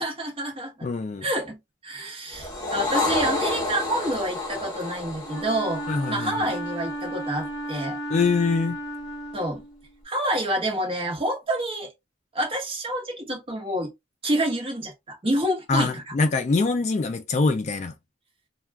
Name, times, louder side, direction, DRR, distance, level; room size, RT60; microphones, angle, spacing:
voice 1, 0.0-0.9 1.2-8.0 9.3-9.6 10.0-11.9 12.3-13.9 14.2-16.1, right 1 dB, 30° right, 1.0 m, -28 dB
voice 2, 0.8-1.2 5.9-6.3 8.1-8.8 15.7-17.9, left 4 dB, 35° left, 0.3 m, -24 dB
sound 1, 2.3-6.9, left 2 dB, 20° left, 0.8 m, -29 dB
Wind instrument woodwind instrument, 5.2-10.0, right 1 dB, ahead, 1.1 m, -34 dB
2.3 x 2.2 x 3.4 m
head